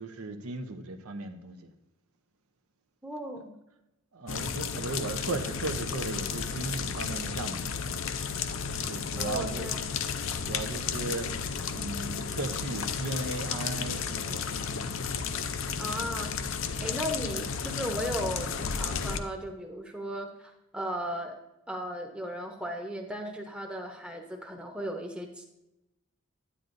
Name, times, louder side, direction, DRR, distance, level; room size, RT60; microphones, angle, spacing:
voice 1, 0.0-1.7 4.1-7.6 8.9-9.7 10.2-11.3 11.7-14.4, right 2 dB, 85° right, 7 dB, 0.8 m, -36 dB
voice 2, 3.0-3.5 9.2-9.9 15.8-16.5 16.8-21.3 21.7-25.4, equal, 5° right, 1 dB, 0.8 m, -36 dB
sound 1, 4.3-19.2, left 6 dB, 65° left, 0.5 m, -33 dB
9.8 x 9.3 x 2.6 m, 0.91 s
head